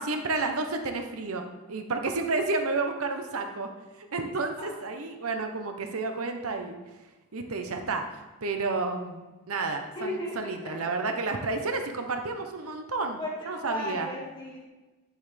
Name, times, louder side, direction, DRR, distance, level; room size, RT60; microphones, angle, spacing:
voice 1, 0.0-1.4 1.7-3.7 4.1-6.8 7.3-13.2 13.5-14.1, right 3 dB, 80° right, 5 dB, 0.9 m, -31 dB
voice 2, 10.0-11.0 13.0-14.7, left 1 dB, 20° left, -4 dB, 2.1 m, -36 dB
9.7 x 7.7 x 3.4 m, 1.1 s
head